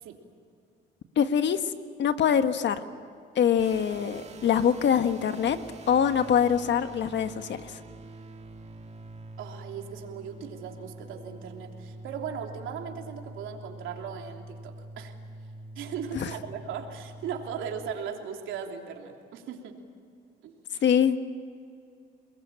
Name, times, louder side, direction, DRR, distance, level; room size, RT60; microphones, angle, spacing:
voice 1, 1.1-1.6 2.0-2.8 3.3-5.6 5.9-7.8 16.1-16.3 20.8-21.2, left 8 dB, 65° left, 9 dB, 1.5 m, -24 dB
sound 1, 3.6-17.9, right 2 dB, 35° right, 2.0 m, -45 dB
voice 2, 9.4-15.1 15.7-19.8 20.4-20.6, right 7 dB, 90° right, 2 dB, 3.2 m, -38 dB
28.5 x 21.0 x 8.9 m, 2.4 s
cardioid pair, 90°, 20 cm